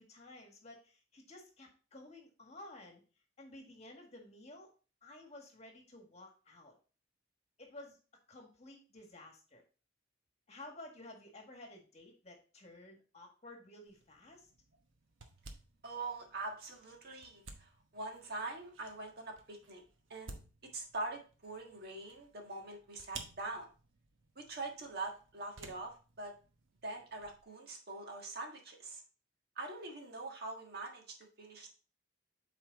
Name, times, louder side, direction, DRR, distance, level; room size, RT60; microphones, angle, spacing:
voice 1, 0.0-3.0 3.4-4.7 5.0-6.7 7.6-8.0 8.3-9.6 10.5-14.5, left 2 dB, 35° left, 2 dB, 1.8 m, -53 dB
sound 1, 13.9-27.4, right 3 dB, 80° right, 1.1 m, -56 dB
voice 2, 15.8-19.8 20.1-20.4 20.7-23.7 24.3-26.3 26.8-29.0 29.5-31.7, right 2 dB, 55° right, 2 dB, 1.5 m, -44 dB
8.0 x 4.2 x 4.0 m, 0.36 s
head